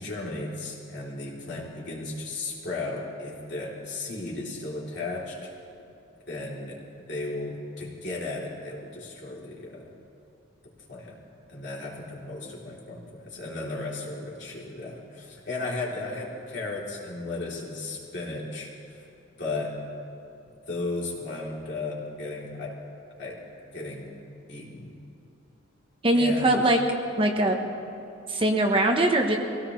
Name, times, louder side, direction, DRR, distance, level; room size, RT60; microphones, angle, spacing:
voice 1, 0.0-5.5 6.3-9.9 10.9-11.2 11.5-19.0 19.4-19.8 20.7-22.8 23.2-23.4 23.7-24.2 24.5-25.0 26.1-26.8, left 2 dB, 60° left, -5 dB, 3.2 m, -35 dB
voice 2, 26.0-26.8 27.2-27.6 28.3-29.4, right 1 dB, 25° right, 3 dB, 1.0 m, -21 dB
23.0 x 17.0 x 3.2 m, 2.7 s
head